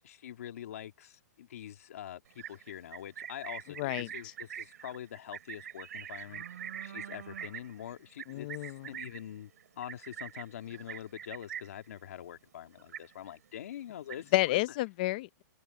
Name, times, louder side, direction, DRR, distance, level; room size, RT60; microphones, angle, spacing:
voice 1, 0.0-6.4 6.8-8.5 8.9-9.5 9.8-14.6, left 10 dB, 50° left, 2.0 m, -44 dB
Livestock farm animals working animals, 2.3-11.9 12.2-12.5 12.8-13.5 13.8-14.5, right 9 dB, 60° right, 3.8 m, -44 dB
voice 2, 3.8-4.3 8.3-9.0 14.3-15.4, left 18 dB, 25° left, 0.7 m, -31 dB
hypercardioid pair, 175°, 10 cm